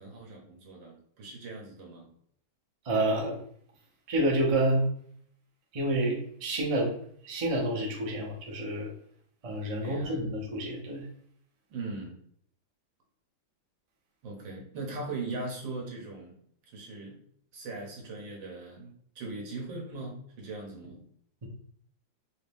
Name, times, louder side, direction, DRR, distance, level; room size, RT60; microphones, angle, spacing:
voice 1, 0.0-2.1 9.8-10.2 11.7-12.2 14.2-16.3 16.7-17.2 17.5-21.0, right 3 dB, 75° right, -1 dB, 1.8 m, -40 dB
voice 2, 2.8-3.4 4.1-4.9 5.7-6.9 7.2-8.9 9.4-11.1, right 1 dB, 40° right, -2 dB, 0.5 m, -28 dB
3.8 x 2.9 x 3.4 m, 0.63 s
omnidirectional pair, 2.1 m